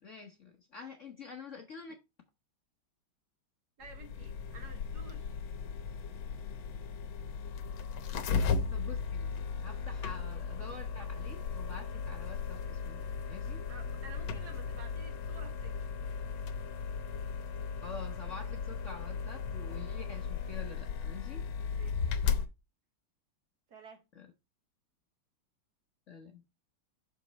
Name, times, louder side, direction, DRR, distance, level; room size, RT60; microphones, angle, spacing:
voice 1, 0.0-2.0 8.7-9.3 9.6-13.6 17.8-21.5 24.1-24.3 26.1-26.4, left 5 dB, 50° left, 1.0 m, -47 dB
sound 1, 3.8-22.5, left 6 dB, 75° left, 1.6 m, -36 dB
voice 2, 3.8-5.3 13.7-15.8 21.7-22.2 23.7-24.0, right 4 dB, 55° right, 1.7 m, -52 dB
6.4 x 5.2 x 4.0 m
omnidirectional pair, 2.3 m